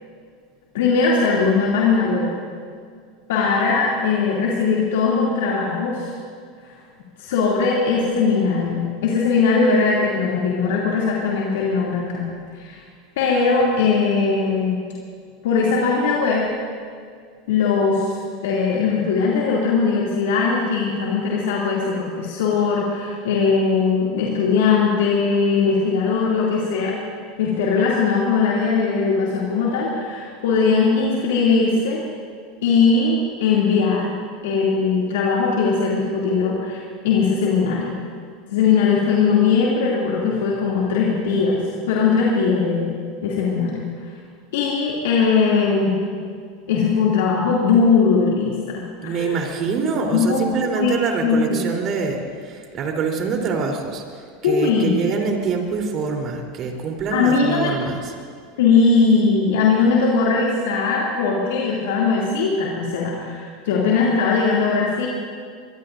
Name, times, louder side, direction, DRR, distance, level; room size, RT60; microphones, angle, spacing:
voice 1, 0.7-2.3 3.3-6.1 6.7-6.8 7.2-12.3 12.5-12.8 13.2-14.8 15.4-16.5 17.5-26.9 27.4-32.0 32.6-34.1 34.4-37.9 38.5-41.6 41.9-42.9 43.2-43.8 44.5-46.0 46.7-49.3 50.1-50.9 51.2-51.6 54.4-55.0 57.1-57.9 58.6-65.1, left 5 dB, 75° left, -4 dB, 2.7 m, -20 dB
voice 2, 49.0-58.1, right 5 dB, 45° right, 1 dB, 3.6 m, -25 dB
23.5 x 23.5 x 2.7 m, 2.1 s
hypercardioid pair, 95°, 0 cm